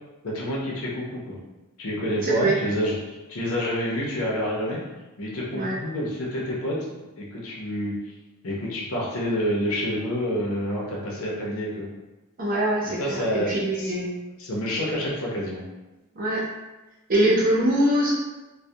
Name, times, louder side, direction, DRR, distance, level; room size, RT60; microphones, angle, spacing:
voice 1, 0.2-1.4 1.8-4.8 5.2-6.8 7.2-7.9 8.4-11.9 12.8-13.9 14.4-15.7, equal, 80° left, -3 dB, 0.7 m, -28 dB
voice 2, 2.2-2.5 5.5-5.7 12.4-14.1 16.2-16.4 17.1-18.1, right 1 dB, 40° right, -4 dB, 0.6 m, -23 dB
2.2 x 2.2 x 2.7 m, 1.1 s
head